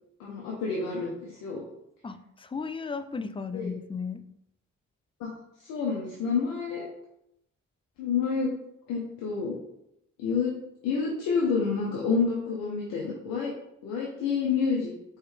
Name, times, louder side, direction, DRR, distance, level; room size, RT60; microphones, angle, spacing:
voice 1, 0.2-1.6 3.5-3.7 5.2-5.3 5.6-6.8 8.0-8.5 8.9-9.5 10.2-10.5 10.8-13.5 13.8-14.9, left 5 dB, 85° left, -3 dB, 0.9 m, -28 dB
voice 2, 2.0-4.2, left 5 dB, 15° left, 11 dB, 0.4 m, -35 dB
4.7 x 3.3 x 3.2 m, 0.80 s
supercardioid pair, 50°, 33 cm